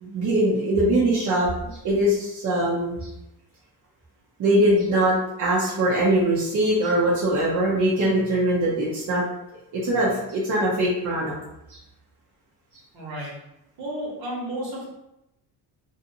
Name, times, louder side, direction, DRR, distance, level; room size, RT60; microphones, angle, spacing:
voice 1, 0.0-3.1 4.4-9.2 9.8-11.3 11.7-11.8, right 1 dB, 50° right, -7 dB, 0.8 m, -22 dB
voice 2, 12.9-13.3 13.8-14.9, right 1 dB, 65° right, -4 dB, 1.3 m, -32 dB
2.7 x 2.4 x 2.7 m, 0.87 s
cardioid pair, 110°, 40 cm